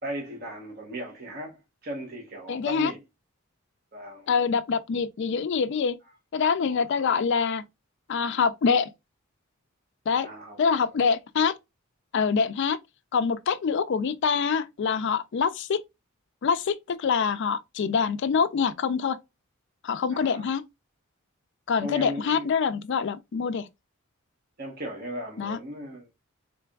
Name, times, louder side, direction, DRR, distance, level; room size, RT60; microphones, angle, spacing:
voice 1, 0.0-3.0 3.9-4.3 6.7-7.1 10.1-11.1 20.1-20.5 21.8-22.5 24.6-26.1, equal, 45° right, 1.0 m, -37 dB
voice 2, 2.5-2.9 4.3-6.0 6.3-7.6 8.1-8.9 10.1-10.3 10.6-11.5 12.1-12.8 13.1-15.8 16.4-19.2 19.8-20.6 21.7-23.7 25.4-25.6, left 6 dB, 55° left, 0.4 m, -25 dB
3.8 x 3.3 x 2.3 m
head